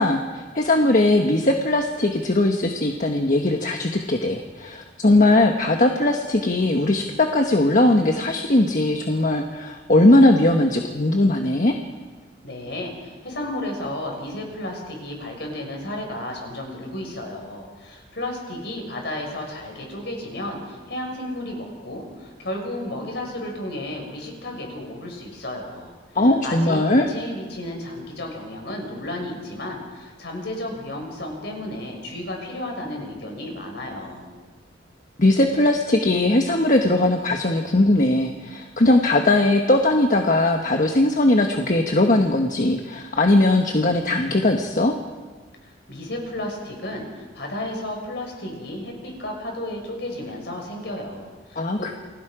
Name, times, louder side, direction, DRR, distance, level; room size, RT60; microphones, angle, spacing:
voice 1, 0.0-11.7 26.1-27.1 35.2-44.9 51.6-51.9, left 2 dB, 45° left, 3 dB, 1.3 m, -19 dB
voice 2, 12.4-25.9 26.4-34.3 45.6-51.9, left 1 dB, 65° left, 1 dB, 5.8 m, -33 dB
29.0 x 20.5 x 5.0 m, 1.4 s
head